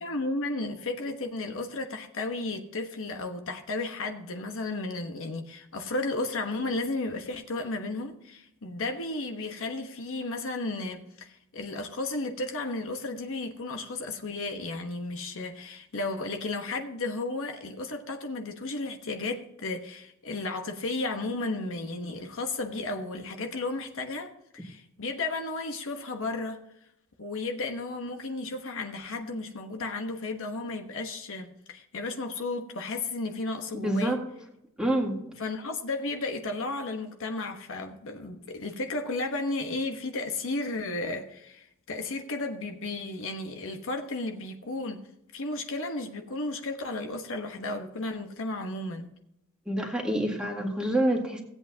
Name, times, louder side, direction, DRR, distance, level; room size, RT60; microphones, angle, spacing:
voice 1, 0.0-26.6 27.2-34.2 35.4-45.0 45.3-49.1, left 2 dB, 65° left, 1.2 m, -33 dB
voice 2, 33.7-34.2 34.8-35.2 49.6-51.4, right 1 dB, 5° right, 1.9 m, -27 dB
17.5 x 8.2 x 2.8 m
head